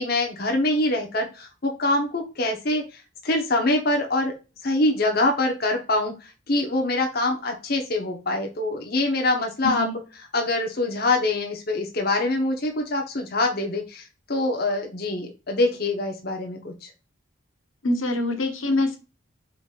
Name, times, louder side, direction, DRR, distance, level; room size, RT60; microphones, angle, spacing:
voice 1, 0.0-4.3 4.6-9.9 10.3-16.9, left 2 dB, 50° left, 2 dB, 1.0 m, -24 dB
voice 2, 9.6-9.9 17.8-19.0, left 2 dB, 75° left, 5 dB, 1.0 m, -24 dB
4.9 x 4.0 x 2.4 m, 0.29 s
head